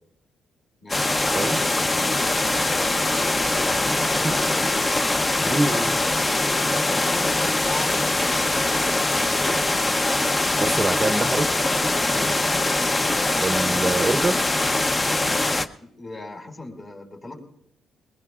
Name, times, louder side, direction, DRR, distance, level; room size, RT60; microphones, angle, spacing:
voice 1, 0.8-1.2 2.0-2.9 3.3-3.6 4.1-4.9 6.9-7.9 8.7-9.3 12.0-12.3 15.8-17.4, left 2 dB, 45° left, 1 dB, 4.5 m, -38 dB
sound 1, 0.9-15.7, left 2 dB, 25° left, 0.7 m, -22 dB
voice 2, 3.9-4.3 5.5-6.0 10.6-11.5 13.4-14.4, right 2 dB, 25° right, 8 dB, 0.7 m, -25 dB
21.0 x 21.0 x 2.4 m, 0.70 s
cardioid pair, 90°, 0 cm